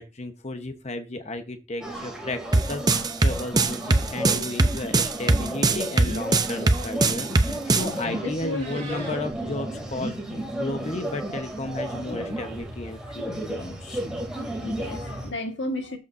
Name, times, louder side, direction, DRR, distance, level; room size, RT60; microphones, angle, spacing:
voice 1, 0.0-14.0, left 2 dB, 35° left, 1.0 m, -34 dB
sound 1, 1.8-15.3, right 1 dB, 5° right, 2.6 m, -33 dB
sound 2, 2.5-7.9, right 2 dB, 20° right, 0.6 m, -20 dB
voice 2, 8.1-8.7 14.2-16.0, left 2 dB, 70° left, 1.6 m, -33 dB
Meow, 8.3-9.2, right 3 dB, 35° right, 4.8 m, -41 dB
13.0 x 6.8 x 2.6 m
head